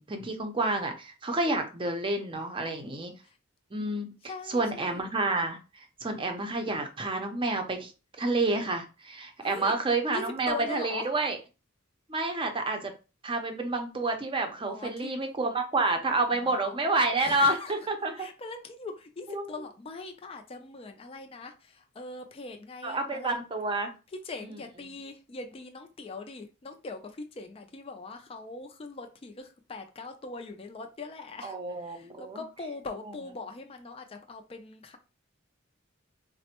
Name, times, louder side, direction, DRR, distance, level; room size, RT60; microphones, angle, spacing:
voice 1, 0.0-3.1 3.7-4.1 4.5-5.6 6.0-7.9 8.2-11.4 12.1-12.9 13.2-18.1 19.3-19.4 22.8-23.9 24.4-24.5 31.4-32.4, right 2 dB, 25° right, 0.6 m, -29 dB
voice 2, 4.3-5.1 9.4-9.8 10.1-11.1 14.7-15.1 16.3-17.7 18.1-23.4 24.1-35.0, left 3 dB, 30° left, 0.4 m, -41 dB
4.1 x 2.1 x 2.9 m
head